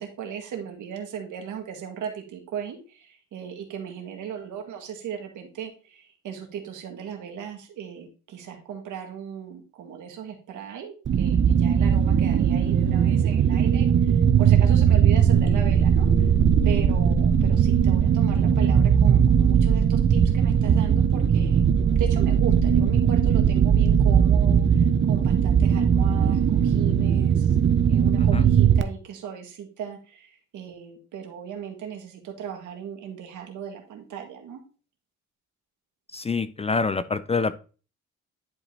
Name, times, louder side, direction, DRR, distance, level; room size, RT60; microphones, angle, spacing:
voice 1, 0.0-16.1 16.6-27.6 27.9-34.6, right 8 dB, 80° right, 4 dB, 1.8 m, -37 dB
sound 1, 11.1-28.8, right 8 dB, 40° right, 0.6 m, -19 dB
voice 2, 36.1-37.5, left 4 dB, 20° left, 15 dB, 0.4 m, -26 dB
10.5 x 5.0 x 2.8 m, 0.35 s
cardioid pair, 90°, 30 cm